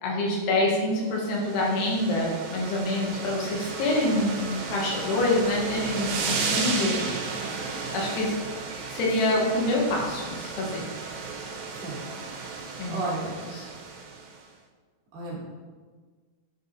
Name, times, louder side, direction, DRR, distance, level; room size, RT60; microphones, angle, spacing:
voice 1, 0.0-7.0 7.9-8.4 8.9-10.9 12.8-13.0 13.5-13.7, left 1 dB, 80° left, -3 dB, 3.2 m, -26 dB
sound 1, 1.1-14.4, right 4 dB, 85° right, 2.9 m, -34 dB
voice 2, 12.9-13.4 15.1-15.5, right 2 dB, 65° right, -6 dB, 2.8 m, -32 dB
9.8 x 4.0 x 2.7 m, 1.4 s
omnidirectional pair, 4.8 m